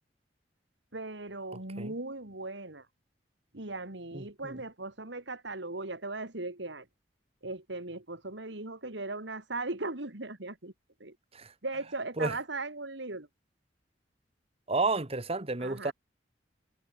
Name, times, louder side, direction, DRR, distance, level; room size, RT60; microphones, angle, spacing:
voice 1, 0.9-2.9 3.5-6.9 7.4-10.7 11.0-11.2 11.6-13.3 15.6-15.9, right 2 dB, 75° right, 3.0 m, -38 dB
voice 2, 4.1-4.6 11.3-11.5 12.2-12.4 14.7-15.9, right 3 dB, 35° right, 1.5 m, -31 dB
head